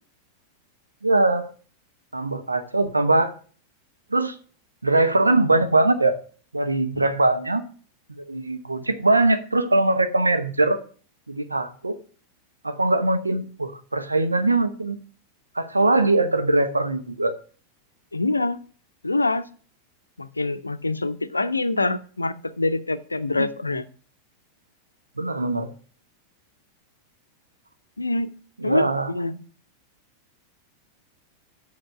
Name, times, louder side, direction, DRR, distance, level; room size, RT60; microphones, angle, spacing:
voice 1, 1.0-1.5 2.1-3.3 4.1-4.4 4.8-6.2 6.5-7.6 8.1-10.8 11.3-12.0 12.6-15.0 15.5-17.3 23.3-23.5 25.2-25.7 28.6-29.1, right 2 dB, 80° right, 8 dB, 0.9 m, -21 dB
voice 2, 18.1-18.6 19.0-19.4 20.2-23.9 28.0-28.3 28.6-29.4, left 2 dB, 80° left, 13 dB, 0.5 m, -25 dB
7.7 x 5.8 x 5.7 m, 0.42 s
figure-of-eight pair, 90°, 0 cm